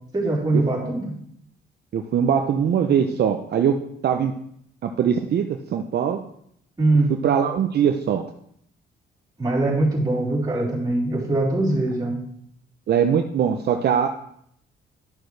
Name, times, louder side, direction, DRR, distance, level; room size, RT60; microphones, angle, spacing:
voice 1, 0.1-1.1 6.8-7.1 9.4-12.2, right 2 dB, 20° right, -5 dB, 3.4 m, -22 dB
voice 2, 1.9-3.8 4.0-4.3 4.8-6.2 7.2-8.2 12.9-14.1, right 8 dB, 55° right, 5 dB, 0.6 m, -21 dB
11.5 x 6.3 x 3.3 m, 0.70 s
cardioid pair, 90°, 20 cm